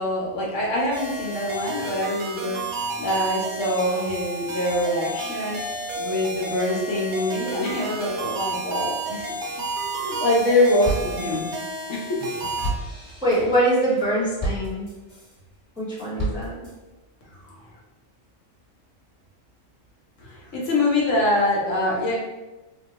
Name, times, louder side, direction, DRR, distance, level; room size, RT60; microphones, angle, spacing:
voice 1, 0.0-9.3 9.9-11.6 11.9-12.2 17.3-17.5 20.2-22.2, left 1 dB, 75° left, -3 dB, 1.2 m, -25 dB
sound 1, 0.9-12.7, right 2 dB, 70° right, 0.9 m, -31 dB
sound 2, 10.2-10.5 10.8-15.4 15.8-16.7, right 1 dB, 25° left, 1.1 m, -32 dB
voice 2, 13.2-14.9 15.8-16.6, right 1 dB, 5° right, -8 dB, 0.7 m, -23 dB
3.8 x 2.2 x 2.9 m, 1.1 s
omnidirectional pair, 1.3 m